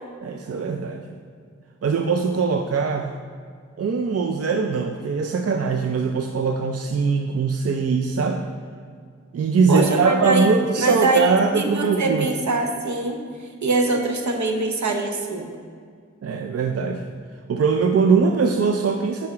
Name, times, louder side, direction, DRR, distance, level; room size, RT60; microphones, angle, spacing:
voice 1, 0.2-1.1 1.8-3.1 3.8-8.4 9.3-12.3 16.2-17.0 17.5-19.3, right 5 dB, 55° right, 3 dB, 0.4 m, -21 dB
voice 2, 9.7-10.5 10.8-13.2 13.6-15.5, right 2 dB, 75° right, 3 dB, 0.8 m, -23 dB
5.9 x 4.9 x 4.3 m, 2.1 s
cardioid pair, 50°, 29 cm